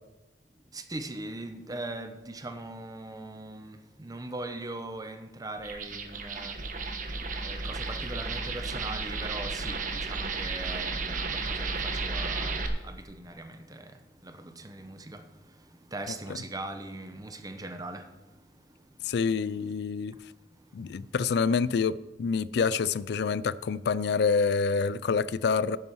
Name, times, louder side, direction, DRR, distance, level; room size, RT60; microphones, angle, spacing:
voice 1, 0.7-6.6 7.4-15.3 15.9-18.1, right 2 dB, 20° right, 0.9 m, -40 dB
sound 1, 5.6-12.7, right 3 dB, 50° right, 1.1 m, -33 dB
voice 2, 19.0-20.1 20.7-25.8, left 5 dB, 65° left, 0.4 m, -27 dB
11.0 x 9.6 x 4.7 m
head